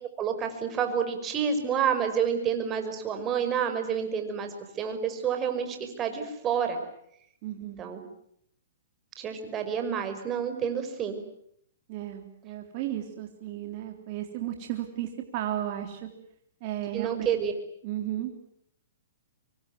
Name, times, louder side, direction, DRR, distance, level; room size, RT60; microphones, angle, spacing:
voice 1, 0.2-6.8 7.8-8.0 9.2-11.2 16.9-17.5, right 7 dB, 25° right, 6 dB, 5.6 m, -29 dB
voice 2, 7.4-7.8 11.9-16.1 16.6-17.4 17.8-18.4, right 12 dB, 40° right, 3 dB, 3.6 m, -34 dB
26.0 x 24.0 x 9.4 m, 0.71 s
hypercardioid pair, 140°, 0 cm